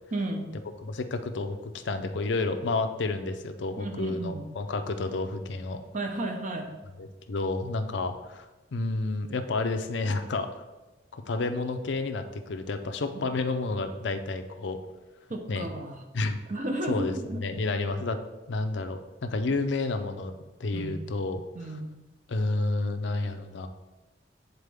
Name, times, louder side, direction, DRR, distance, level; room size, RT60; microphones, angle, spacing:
voice 1, 0.1-0.5 3.8-4.5 5.9-6.7 13.1-13.3 15.3-16.0 16.5-17.4 20.7-21.0 21.5-21.9, right 1 dB, 45° right, 3 dB, 0.8 m, -33 dB
voice 2, 0.8-5.8 7.0-8.5 8.7-10.6 11.1-14.8 15.5-15.7 16.1-16.4 16.9-18.2 18.5-20.3 20.6-21.4 22.3-23.7, left 3 dB, 70° left, 7 dB, 0.5 m, -30 dB
8.1 x 4.1 x 3.5 m, 1.1 s
head